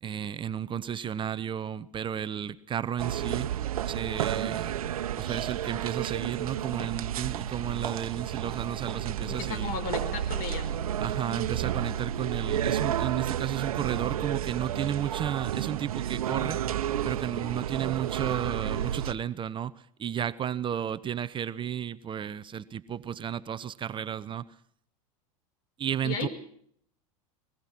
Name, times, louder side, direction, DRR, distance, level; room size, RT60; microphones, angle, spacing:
voice 1, 0.0-3.5 3.9-4.8 5.2-9.7 11.0-16.6 17.0-24.5 25.8-26.3, right 9 dB, 25° right, 0.9 m, -33 dB
sound 1, 3.0-19.1, right 10 dB, 90° right, 1.0 m, -31 dB
voice 2, 9.2-10.7 26.0-26.3, left 5 dB, 55° left, 5.5 m, -35 dB
22.0 x 21.5 x 6.0 m
hypercardioid pair, 110°, 18 cm